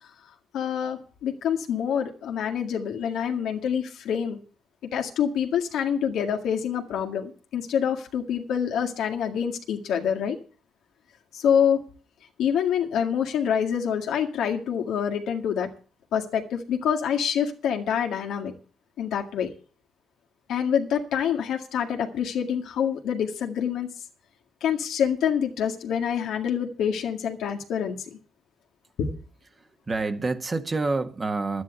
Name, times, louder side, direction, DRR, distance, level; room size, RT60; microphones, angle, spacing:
voice 1, 0.5-4.4 4.9-10.4 11.3-11.8 12.4-15.7 16.1-18.5 19.0-19.5 20.5-23.9 24.6-28.2 29.0-29.1, left 8 dB, 80° left, 1.9 m, -26 dB
voice 2, 29.5-31.6, right 3 dB, 30° right, 1.6 m, -28 dB
11.5 x 9.7 x 6.9 m
cardioid pair, 90°, 0 cm